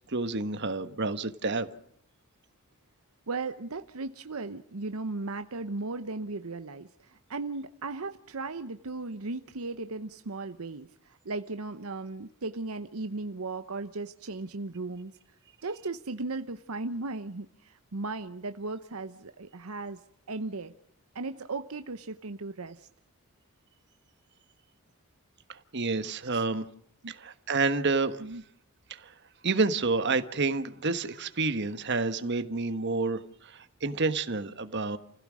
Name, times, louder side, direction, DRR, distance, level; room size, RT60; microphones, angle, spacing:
voice 1, 0.1-1.7 25.5-26.6 27.1-28.2 28.9-29.1 29.4-35.0, right 3 dB, 50° right, 10 dB, 1.3 m, -29 dB
voice 2, 3.3-15.1 15.6-20.0 20.3-20.7 21.1-22.9 26.2-26.5 27.0-27.1 28.2-28.4, right 3 dB, 75° right, 9 dB, 0.9 m, -36 dB
29.5 x 16.0 x 6.2 m, 0.70 s
head